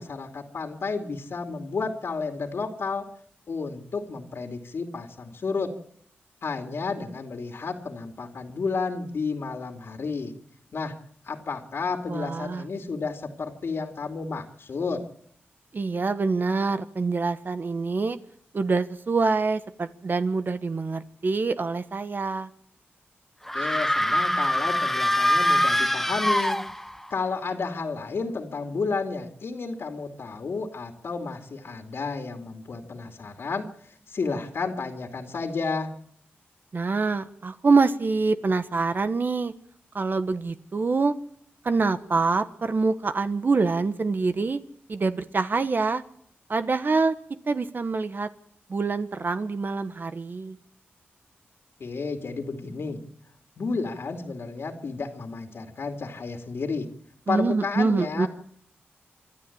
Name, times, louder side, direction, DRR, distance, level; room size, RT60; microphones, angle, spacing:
voice 1, 0.0-3.1 3.5-5.7 6.4-10.3 10.7-10.9 11.2-15.0 23.5-26.6 27.1-35.9 51.8-53.0 53.6-56.9 57.3-58.3, left 4 dB, 75° left, 5 dB, 2.6 m, -31 dB
voice 2, 12.1-12.6 15.7-18.2 18.5-22.5 36.7-39.5 39.9-41.1 41.6-44.6 44.9-46.0 46.5-47.1 47.5-48.3 48.7-50.6 57.3-58.3, right 4 dB, 50° right, 11 dB, 1.2 m, -25 dB
sound 1, 23.5-27.1, left 1 dB, 5° left, 0.9 m, -24 dB
28.0 x 12.0 x 8.7 m, 0.65 s
cardioid pair, 70°, 4 cm